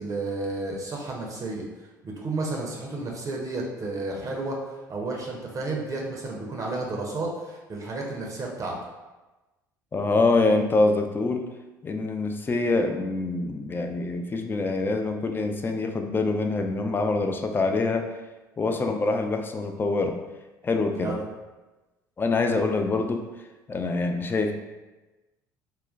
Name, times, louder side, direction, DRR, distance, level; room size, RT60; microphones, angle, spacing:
voice 1, 0.0-1.6 2.0-4.6 4.9-8.8 21.0-21.2, right 2 dB, 35° right, -2 dB, 0.6 m, -32 dB
voice 2, 9.9-11.5 11.8-18.1 18.6-20.2 20.6-21.1 22.2-23.2 23.7-24.5, left 3 dB, 20° left, 5 dB, 0.3 m, -25 dB
3.7 x 2.1 x 2.4 m, 1.1 s
figure-of-eight pair, 60°, 10 cm